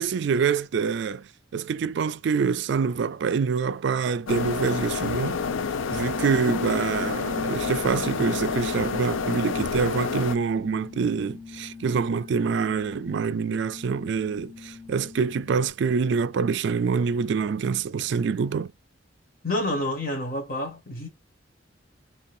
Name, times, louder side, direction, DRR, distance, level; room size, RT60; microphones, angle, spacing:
voice 1, 0.0-5.4 5.9-18.7, right 5 dB, 65° right, 0.3 m, -26 dB
sound 1, 4.3-10.4, left 5 dB, 90° left, 0.5 m, -29 dB
sound 2, 6.5-15.7, left 4 dB, 15° left, 1.4 m, -41 dB
voice 2, 19.4-21.1, left 1 dB, 50° left, 2.1 m, -28 dB
4.2 x 3.9 x 2.6 m
head